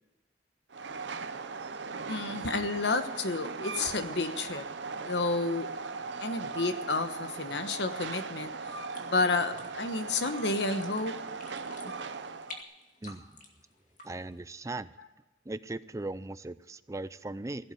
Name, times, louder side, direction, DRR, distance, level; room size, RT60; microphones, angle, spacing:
Train, 0.7-12.6, right 4 dB, 75° right, 0.8 m, -39 dB
voice 1, 2.1-4.7 5.0-5.7 6.2-8.5 9.0-11.2, left 3 dB, 70° left, 9 dB, 1.2 m, -30 dB
sound 1, 8.8-14.4, left 3 dB, 45° left, 2.1 m, -50 dB
voice 2, 13.0-13.4 14.0-14.9 15.5-17.7, right 2 dB, 15° right, 15 dB, 0.4 m, -38 dB
16.5 x 8.1 x 9.4 m, 1.1 s
head